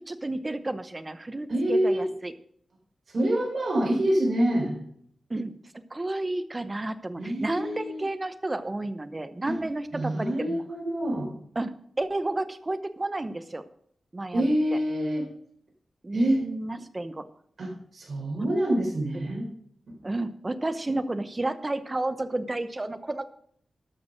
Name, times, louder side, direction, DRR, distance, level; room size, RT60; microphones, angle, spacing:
voice 1, 0.1-2.3 5.3-5.6 5.9-10.6 11.6-13.6 14.1-14.8 16.0-17.3 18.4-18.5 19.1-19.3 20.0-23.3, right 2 dB, 20° right, 11 dB, 0.8 m, -31 dB
voice 2, 1.5-2.0 3.1-4.8 7.2-8.0 9.5-9.6 9.9-11.3 14.3-15.3 16.1-16.4 17.6-19.5 19.9-20.0, right 1 dB, 50° right, 0 dB, 4.3 m, -26 dB
12.5 x 6.2 x 6.2 m, 0.65 s
wide cardioid pair, 115°, 0 cm